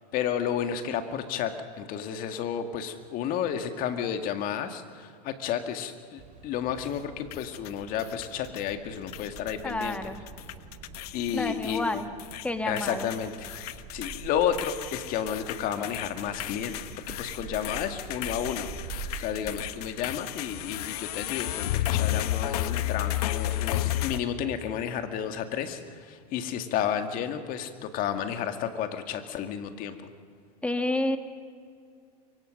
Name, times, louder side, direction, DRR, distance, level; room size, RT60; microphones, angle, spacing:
voice 1, 0.1-10.1 11.1-12.0 12.6-13.5 13.9-16.8 17.1-30.0, left 9 dB, 45° left, 7 dB, 1.9 m, -32 dB
sound 1, 6.2-24.3, right 5 dB, 35° right, 4.6 m, -46 dB
sound 2, 7.3-8.8 9.1-10.0 10.3-12.5 12.8-24.2, left 14 dB, 70° left, 1.1 m, -33 dB
voice 2, 9.6-10.2 11.3-12.1 12.4-13.1 30.6-31.2, left 2 dB, 5° left, 8 dB, 1.5 m, -29 dB
24.0 x 23.0 x 6.5 m, 2.2 s
supercardioid pair, 120°, 20 cm